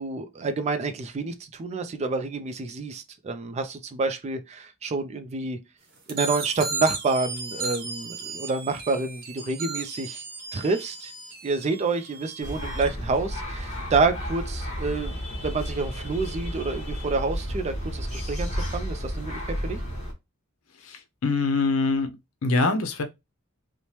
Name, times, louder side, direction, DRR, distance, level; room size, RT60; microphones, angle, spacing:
voice 1, 0.0-5.6 6.1-10.2 10.5-11.1 11.4-19.8, right 3 dB, 30° right, 0.3 m, -28 dB
sound 1, 6.1-12.9, right 4 dB, 45° right, 0.8 m, -35 dB
sound 2, 12.4-20.1, equal, 35° left, 0.9 m, -32 dB
voice 2, 20.8-22.2 22.4-23.0, left 3 dB, 70° left, 0.6 m, -24 dB
3.1 x 2.1 x 2.7 m
head